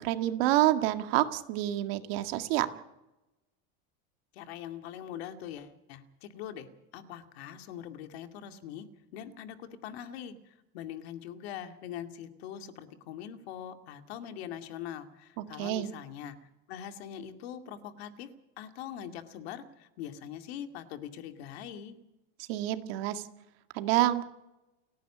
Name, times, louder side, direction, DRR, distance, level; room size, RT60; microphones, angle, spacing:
voice 1, 0.0-2.7 15.6-15.9 22.5-23.2 23.7-24.2, right 15 dB, 70° right, 8 dB, 2.0 m, -27 dB
voice 2, 4.3-6.7 6.9-8.9 9.1-16.4 16.7-18.3 18.6-22.0, left 9 dB, 85° left, 7 dB, 2.4 m, -42 dB
30.0 x 10.5 x 8.7 m, 0.96 s
cardioid pair, 155°, 31 cm